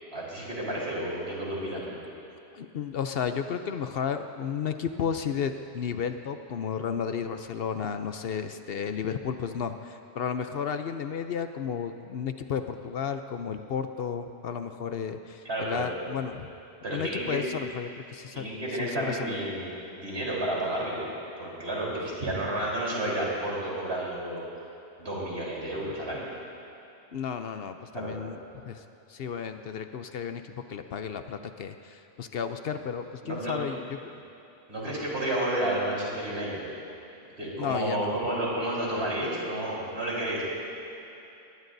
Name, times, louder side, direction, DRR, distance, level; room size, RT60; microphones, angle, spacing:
voice 1, 0.1-1.8 15.4-15.9 16.8-17.4 18.3-19.7 20.0-21.1 21.4-24.4 25.0-26.3 27.9-28.1 32.7-32.8 33.2-33.6 34.7-36.6 37.4-40.4, right 1 dB, 65° right, -6 dB, 4.2 m, -31 dB
voice 2, 1.7-2.0 2.5-16.5 16.9-18.5 18.8-19.4 27.1-34.2 37.6-38.2, left 7 dB, 65° left, 8 dB, 0.8 m, -33 dB
21.0 x 20.5 x 2.7 m, 2.9 s
omnidirectional pair, 1.1 m